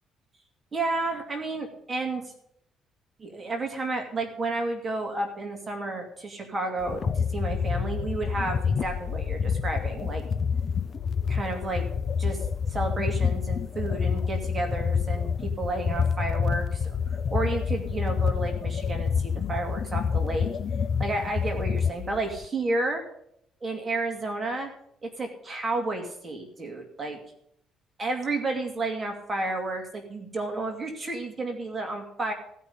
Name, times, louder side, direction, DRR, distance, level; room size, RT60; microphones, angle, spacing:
voice 1, 0.7-2.3 3.2-10.2 11.3-11.9 12.2-12.4 12.7-20.5 21.0-23.0 23.6-24.7 25.0-27.2 28.0-32.3, right 2 dB, 30° right, 3 dB, 2.4 m, -31 dB
sound 1, 6.8-22.5, left 6 dB, 45° left, 0.5 m, -28 dB
15.5 x 5.6 x 8.3 m, 0.71 s
cardioid pair, 105°, 0 cm